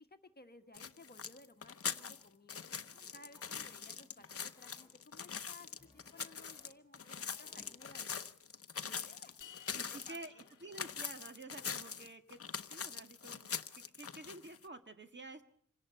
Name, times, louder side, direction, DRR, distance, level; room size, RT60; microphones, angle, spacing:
voice 1, 0.0-2.7 3.1-8.3 8.8-9.3 9.7-10.5, left 2 dB, 30° left, 7 dB, 1.4 m, -59 dB
sound 1, 0.7-14.6, left 6 dB, 50° left, 0.8 m, -43 dB
sound 2, 2.8-4.9 5.8-6.7 7.0-8.0, left 1 dB, 15° left, 4.4 m, -66 dB
sound 3, 9.4-11.7, left 9 dB, 85° left, 0.9 m, -59 dB
voice 2, 9.7-12.4 12.7-15.4, right 2 dB, 35° right, 7 dB, 1.8 m, -50 dB
27.0 x 17.5 x 5.6 m, 0.64 s
wide cardioid pair, 130°, 30 cm